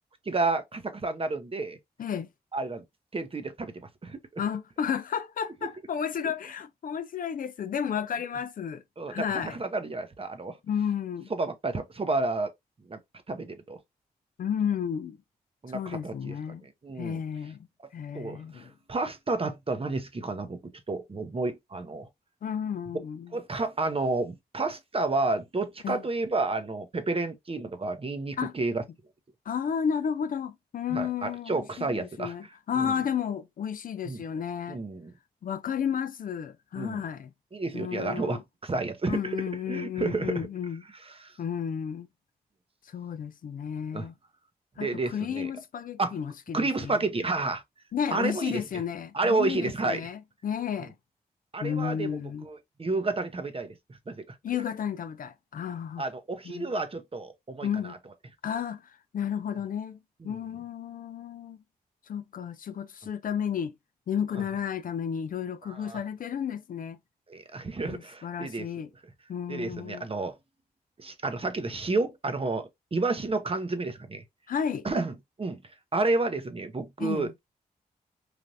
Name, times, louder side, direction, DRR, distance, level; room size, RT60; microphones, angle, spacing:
voice 1, 0.3-1.8 2.5-2.8 3.1-3.7 4.0-4.4 9.0-10.6 11.3-12.5 12.9-13.0 13.3-13.8 15.6-16.3 16.8-17.2 18.1-22.1 23.3-28.8 30.9-32.3 32.8-32.9 34.1-34.2 34.7-35.1 36.8-37.0 37.5-39.4 39.7-40.5 41.1-41.3 43.9-44.1 44.8-45.5 46.0-46.1 46.5-47.6 48.1-48.6 49.1-50.0 51.5-53.7 54.1-54.4 56.0-58.0 60.2-60.4 65.6-66.0 67.3-68.7 69.5-70.3 71.0-74.2 74.8-75.1 75.4-75.6 75.9-77.4, right 3 dB, 35° right, 0.7 m, -30 dB
voice 2, 4.4-8.8 9.1-9.6 10.6-11.3 14.4-15.2 15.7-16.6 17.0-17.7 17.9-18.7 22.4-23.4 25.8-26.0 28.4-28.5 29.5-34.8 35.4-37.3 37.7-38.4 39.1-40.8 41.4-42.1 42.9-44.1 44.8-47.0 47.9-50.9 51.6-52.5 54.4-56.1 56.4-56.7 57.6-58.0 58.4-60.0 60.2-61.6 62.1-63.8 64.1-67.0 67.8-68.9 69.3-70.1 74.5-74.9 77.0-77.3, left 8 dB, 55° left, 0.4 m, -32 dB
3.3 x 2.5 x 2.6 m
supercardioid pair, 45°, 17 cm